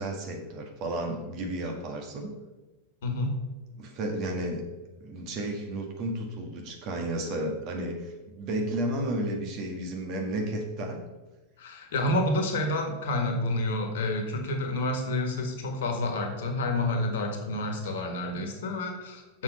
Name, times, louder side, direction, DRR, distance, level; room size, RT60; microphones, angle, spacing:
voice 1, 0.0-2.3 3.8-4.6 5.0-11.0, right 1 dB, 40° right, 2 dB, 1.8 m, -32 dB
voice 2, 3.0-3.4 11.6-19.4, left 1 dB, 55° left, 4 dB, 1.7 m, -29 dB
7.0 x 6.7 x 5.6 m, 1.1 s
figure-of-eight pair, 90°, 0 cm